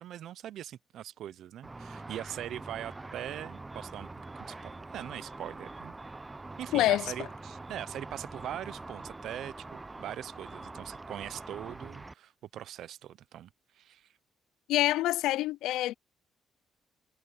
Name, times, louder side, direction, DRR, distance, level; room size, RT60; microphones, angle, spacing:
voice 1, 0.0-4.1 4.3-5.9 6.6-14.1, right 11 dB, 75° right, 0.8 m, -42 dB
Car / Traffic noise roadway noise / Engine, 1.6-12.1, right 2 dB, 20° right, 0.7 m, -44 dB
voice 2, 6.7-7.1 14.7-16.0, left 15 dB, 90° left, 0.4 m, -26 dB
cardioid pair, 90°, 0 cm